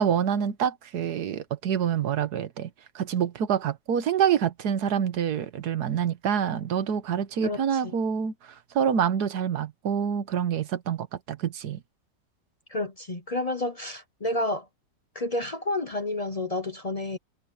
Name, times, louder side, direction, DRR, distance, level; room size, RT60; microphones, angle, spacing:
voice 1, 0.0-2.7 2.9-11.8, right 8 dB, 65° right, 1.6 m, -26 dB
voice 2, 7.4-7.9 12.7-14.7 15.1-17.2, left 2 dB, 40° left, 0.5 m, -30 dB
omnidirectional pair, 2.0 m